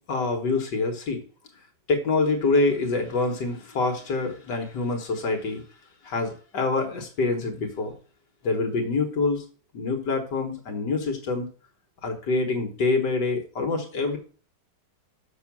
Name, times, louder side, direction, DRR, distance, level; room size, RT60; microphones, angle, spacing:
voice 1, 0.1-1.2 1.9-5.6 6.0-7.9 8.4-9.4 9.7-11.5 12.0-14.2, left 3 dB, 70° left, 3 dB, 1.9 m, -26 dB
6.7 x 6.3 x 6.0 m, 0.40 s
omnidirectional pair, 1.9 m